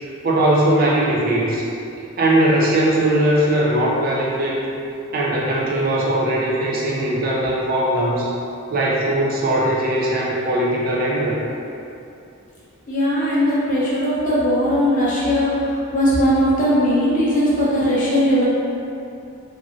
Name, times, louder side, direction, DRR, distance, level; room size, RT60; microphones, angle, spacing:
voice 1, 0.2-1.6 2.2-4.7 5.1-8.3 8.7-11.4, right 1 dB, 40° right, -5 dB, 0.4 m, -19 dB
voice 2, 12.9-18.5, equal, 35° left, -8 dB, 0.7 m, -19 dB
2.9 x 2.6 x 2.6 m, 2.7 s
head